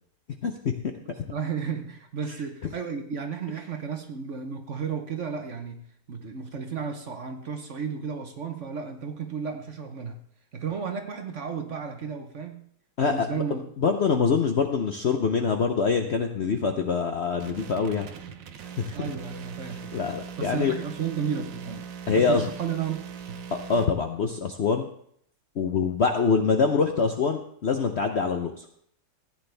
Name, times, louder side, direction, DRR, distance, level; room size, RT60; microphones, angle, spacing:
voice 1, 0.4-0.7 13.0-13.3 13.8-18.1 18.8-19.0 19.9-20.7 22.1-22.5 23.7-24.9 25.6-28.6, left 5 dB, 55° left, 5 dB, 0.7 m, -24 dB
voice 2, 1.0-5.8 6.1-10.2 10.5-12.7 13.0-13.7 18.9-20.0 20.4-23.0 23.3-23.4, right 6 dB, 50° right, 6 dB, 1.1 m, -33 dB
sound 1, 17.4-23.9, right 7 dB, 85° right, 1.6 m, -40 dB
15.0 x 9.0 x 3.3 m, 0.66 s
omnidirectional pair, 1.9 m